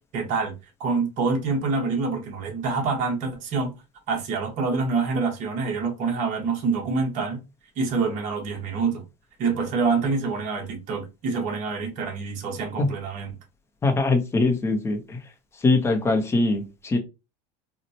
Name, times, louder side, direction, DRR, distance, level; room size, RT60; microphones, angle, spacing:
voice 1, 0.1-0.5 0.8-3.7 4.1-7.4 7.8-9.0 9.4-13.3, right 4 dB, 45° right, 1.0 m, -26 dB
voice 2, 13.8-15.2 15.6-17.0, left 3 dB, 15° left, 0.6 m, -22 dB
4.1 x 2.1 x 2.7 m
cardioid pair, 155°, 19 cm